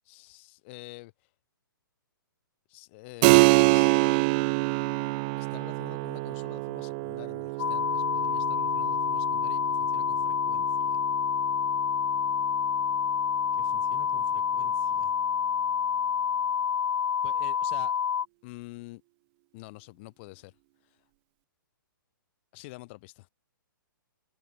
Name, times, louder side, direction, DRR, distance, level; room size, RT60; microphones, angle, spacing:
voice 1, 0.0-1.1 2.7-3.9 5.4-11.0 13.6-15.1 17.2-17.9 18.4-19.0 19.5-20.5 22.5-23.3, left 24 dB, 35° left, 1.7 m, -47 dB
Keyboard (musical), 3.2-13.4, right 29 dB, 25° right, 0.4 m, -27 dB
sound 1, 7.6-18.3, left 7 dB, 60° left, 0.6 m, -28 dB
figure-of-eight pair, 120°, 11 cm